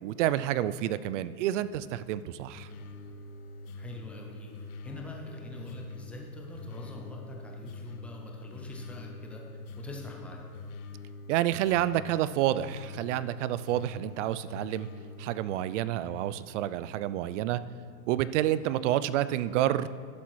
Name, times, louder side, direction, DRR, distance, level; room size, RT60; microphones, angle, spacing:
voice 1, 0.0-2.7 11.3-14.9 15.2-17.6 18.1-19.9, right 13 dB, 55° right, 16 dB, 0.5 m, -29 dB
sound 1, 2.5-15.7, left 3 dB, 70° left, 1.1 m, -44 dB
voice 2, 3.8-4.5 4.8-10.4, left 2 dB, 5° left, 0 dB, 0.3 m, -44 dB
11.5 x 7.1 x 4.7 m, 2.5 s
hypercardioid pair, 135°, 45 cm